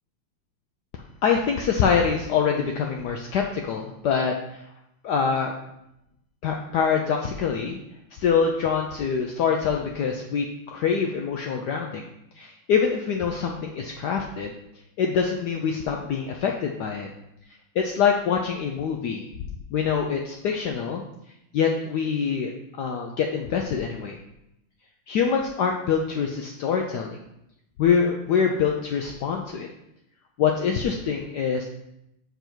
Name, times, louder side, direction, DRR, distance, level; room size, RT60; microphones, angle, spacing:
voice 1, 0.9-4.3 5.0-5.5 6.4-7.8 8.1-12.0 12.4-14.5 15.0-17.1 17.7-19.3 19.7-21.0 21.5-22.5 22.8-24.2 25.1-27.2 27.8-29.7 30.4-31.6, left 6 dB, 85° left, 2 dB, 0.9 m, -25 dB
6.9 x 3.9 x 4.4 m, 0.84 s
omnidirectional pair, 2.4 m